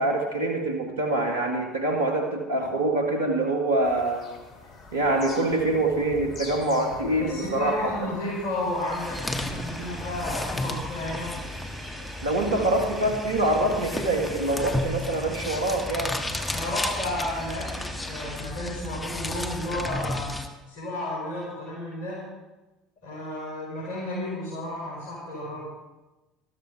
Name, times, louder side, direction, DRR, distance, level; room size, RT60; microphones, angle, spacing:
voice 1, 0.0-4.3 4.9-7.9 12.2-16.2, right 2 dB, 85° right, 3 dB, 1.6 m, -25 dB
Bird vocalization bird call bird song, 3.8-10.2, left 3 dB, 45° left, 2.7 m, -45 dB
voice 2, 7.2-11.4 16.2-20.3 20.7-22.2 23.0-25.7, left 1 dB, 65° left, -6 dB, 4.8 m, -32 dB
sound 1, 8.5-18.4, equal, 5° right, 3.6 m, -42 dB
sound 2, 8.7-20.5, left 2 dB, 15° left, 1.4 m, -33 dB
13.0 x 13.0 x 4.9 m, 1.1 s
hypercardioid pair, 65°, 0 cm